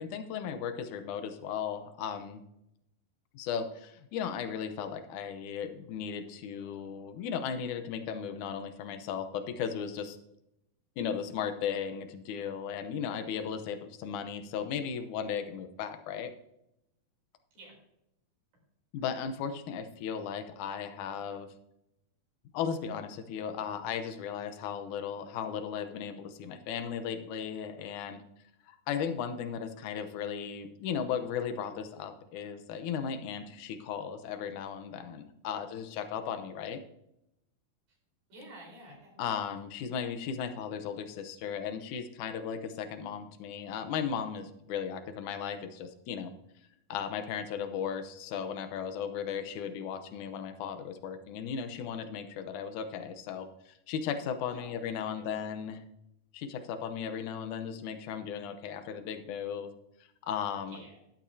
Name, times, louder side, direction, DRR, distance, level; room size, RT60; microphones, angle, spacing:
voice 1, 0.0-2.4 3.3-10.2 11.0-16.3 18.9-21.5 22.5-28.2 28.7-36.8 39.2-46.3 46.9-55.8 56.3-59.7 60.2-60.8, left 7 dB, 70° left, 8 dB, 2.2 m, -36 dB
voice 2, 38.3-39.2 54.5-54.8 55.0-55.4 60.7-61.0, right 1 dB, 80° right, -2 dB, 6.1 m, -51 dB
11.5 x 11.5 x 2.7 m, 0.82 s
omnidirectional pair, 4.1 m